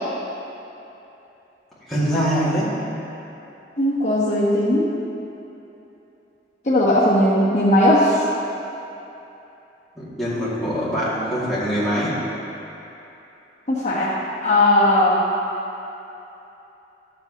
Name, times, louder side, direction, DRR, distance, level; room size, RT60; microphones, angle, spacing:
voice 1, 1.9-2.8 10.0-12.2, equal, ahead, -11 dB, 2.2 m, -23 dB
voice 2, 3.8-4.9 6.6-8.2 13.7-14.1 14.4-15.2, left 1 dB, 40° left, -8 dB, 1.2 m, -17 dB
13.0 x 7.5 x 3.0 m, 3.0 s
head